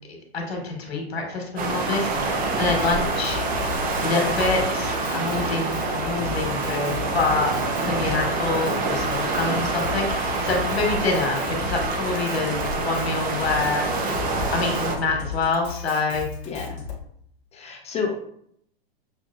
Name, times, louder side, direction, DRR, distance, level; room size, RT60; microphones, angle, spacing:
voice 1, 0.1-7.5 7.8-13.9 14.5-16.3, left 3 dB, 90° left, 0 dB, 1.4 m, -26 dB
sound 1, 1.6-15.0, right 3 dB, 25° right, 0.7 m, -26 dB
Drum kit, 2.6-17.0, left 6 dB, 40° left, 1.3 m, -35 dB
voice 2, 16.5-16.8 17.5-18.2, left 5 dB, 20° left, 1 dB, 0.9 m, -29 dB
6.3 x 2.7 x 2.4 m, 0.68 s
hypercardioid pair, 120°, 31 cm